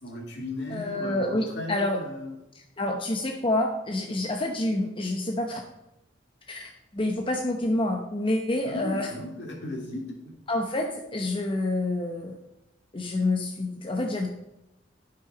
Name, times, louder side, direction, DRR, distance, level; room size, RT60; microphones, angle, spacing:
voice 1, 0.0-2.3 8.6-10.0, left 1 dB, 65° left, 0 dB, 2.6 m, -36 dB
voice 2, 0.7-2.0 2.5-5.6 6.5-9.1 10.5-12.4 12.9-14.3, left 2 dB, 30° left, 2 dB, 0.8 m, -28 dB
11.5 x 6.1 x 5.0 m, 0.90 s
head